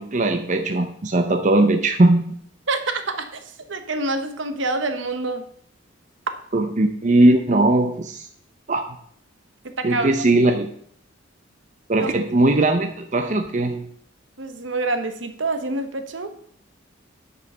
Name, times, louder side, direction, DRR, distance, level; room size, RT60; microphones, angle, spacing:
voice 1, 0.0-2.4 6.5-8.2 8.7-8.8 9.8-10.7 11.9-13.8, right 2 dB, 40° right, 6 dB, 0.7 m, -19 dB
voice 2, 2.7-5.5 9.6-10.3 12.0-12.1 14.4-16.3, right 2 dB, 70° right, 8 dB, 1.1 m, -27 dB
9.5 x 5.5 x 5.5 m, 0.63 s
head